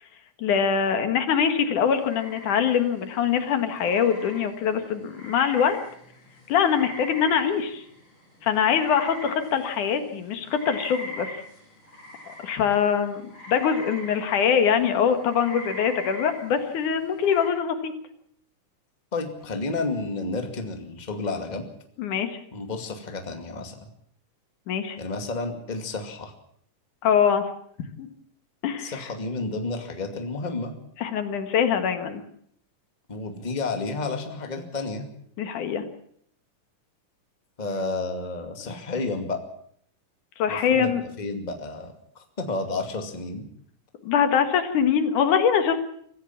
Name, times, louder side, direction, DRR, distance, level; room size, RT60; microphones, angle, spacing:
voice 1, 0.4-5.8 6.5-7.8 8.4-11.3 12.4-17.9 22.0-22.4 24.7-25.0 27.0-27.5 28.0-28.1 28.6-29.1 31.0-32.2 35.4-35.8 40.4-41.0 44.0-45.8, left 7 dB, 70° left, 8 dB, 3.1 m, -23 dB
sound 1, 1.9-17.5, left 1 dB, 35° left, 7.8 m, -42 dB
voice 2, 19.1-21.6 22.5-23.9 25.0-26.3 28.8-30.7 33.1-35.1 37.6-39.4 40.5-40.9 41.2-43.5, left 3 dB, 15° left, 5 dB, 2.0 m, -31 dB
25.0 x 15.0 x 7.2 m, 0.64 s
omnidirectional pair, 3.7 m